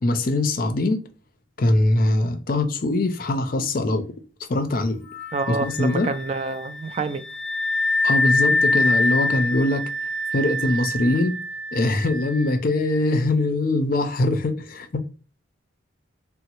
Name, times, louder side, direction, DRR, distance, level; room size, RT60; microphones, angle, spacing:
voice 1, 0.0-1.0 1.6-4.0 4.5-5.0 5.5-6.1 8.0-9.9 10.3-11.4 11.7-15.1, left 2 dB, 45° left, 0.5 m, -22 dB
Wind instrument woodwind instrument, 5.1-12.5, left 2 dB, 5° left, 0.6 m, -25 dB
voice 2, 5.3-7.2, right 4 dB, 35° right, 0.3 m, -27 dB
3.9 x 2.0 x 2.9 m
head